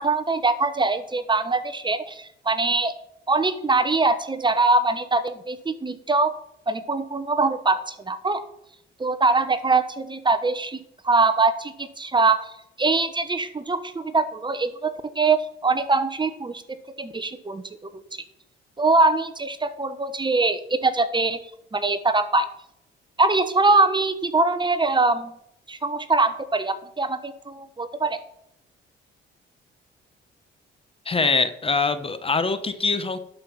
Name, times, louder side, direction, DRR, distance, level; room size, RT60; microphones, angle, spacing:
voice 1, 0.0-2.9 3.3-6.4 6.7-8.4 9.0-10.8 11.0-12.5 12.8-16.6 17.0-17.9 18.8-21.4 21.7-22.5 23.2-25.3 25.7-28.2, right 3 dB, 25° right, 11 dB, 1.1 m, -23 dB
voice 2, 31.1-33.2, left 4 dB, 30° left, 11 dB, 1.1 m, -23 dB
11.5 x 5.7 x 7.2 m, 0.73 s
cardioid pair, 90°, 20 cm